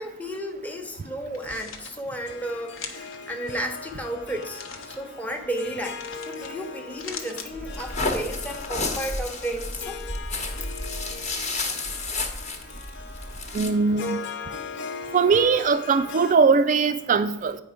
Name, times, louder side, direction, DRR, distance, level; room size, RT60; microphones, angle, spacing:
voice 1, 0.0-10.0, right 1 dB, 10° left, 2 dB, 0.8 m, -33 dB
sound 1, 1.3-1.9 2.7-3.2 4.4-5.0 6.0-6.5 6.8-7.5, left 6 dB, 85° left, 1.0 m, -40 dB
Harp, 2.3-16.3, left 5 dB, 60° left, 0.6 m, -39 dB
sound 2, 7.5-13.7, left 2 dB, 35° left, 1.0 m, -31 dB
voice 2, 13.5-14.2 15.1-17.6, right 5 dB, 40° right, 8 dB, 0.3 m, -20 dB
9.1 x 5.2 x 5.0 m, 0.90 s
head